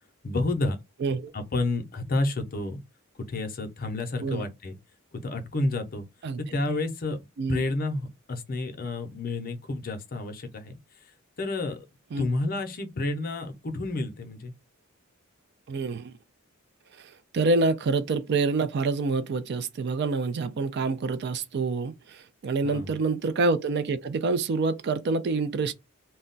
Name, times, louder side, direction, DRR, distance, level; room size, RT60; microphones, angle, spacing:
voice 1, 0.2-0.8 1.3-2.8 3.3-4.8 5.2-6.1 6.4-7.2 7.5-10.8 11.4-11.8 12.2-14.5 22.6-23.0, left 2 dB, 45° left, 0.6 m, -30 dB
voice 2, 1.0-1.3 4.2-4.4 6.2-6.4 6.7-6.8 7.4-7.6 12.1-12.3 15.7-16.1 17.3-25.7, right 3 dB, 50° right, 0.4 m, -27 dB
2.3 x 2.1 x 3.7 m
head